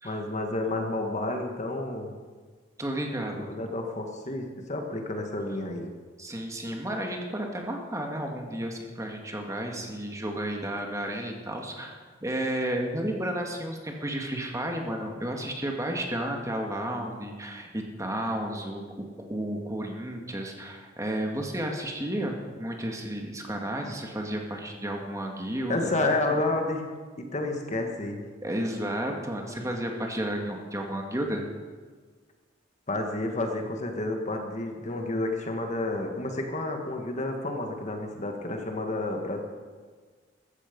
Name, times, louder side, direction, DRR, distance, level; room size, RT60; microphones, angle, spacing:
voice 1, 0.0-2.1 3.3-5.9 25.7-26.8 27.2-28.2 32.9-39.4, left 2 dB, 40° left, 3 dB, 1.8 m, -30 dB
voice 2, 2.8-3.7 6.2-25.9 26.3-26.4 28.4-31.4, right 1 dB, 15° right, 2 dB, 1.9 m, -32 dB
15.0 x 14.5 x 5.4 m, 1.5 s
head